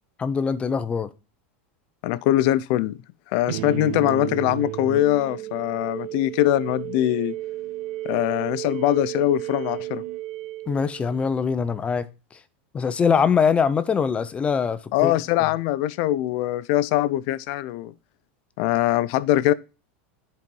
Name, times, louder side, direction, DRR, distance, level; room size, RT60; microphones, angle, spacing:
voice 1, 0.2-1.1 10.7-12.0 12.7-15.1, left 6 dB, 20° left, 0.8 m, -22 dB
voice 2, 2.0-3.0 3.3-7.3 8.0-10.0 14.9-17.9 18.6-19.5, left 14 dB, 55° left, 0.6 m, -22 dB
sound 1, 3.5-11.4, right 15 dB, 60° right, 0.7 m, -33 dB
10.5 x 4.4 x 5.4 m
supercardioid pair, 140°, 6 cm